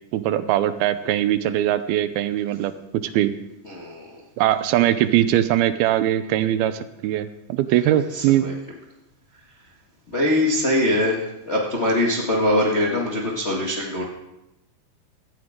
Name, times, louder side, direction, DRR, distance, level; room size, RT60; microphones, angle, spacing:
voice 1, 0.1-3.3 4.4-8.5, right 12 dB, 80° right, 12 dB, 2.5 m, -21 dB
voice 2, 3.7-4.1 8.1-8.5 10.1-14.0, left 1 dB, 35° left, -3 dB, 1.1 m, -22 dB
17.0 x 14.5 x 3.7 m, 0.88 s
omnidirectional pair, 4.5 m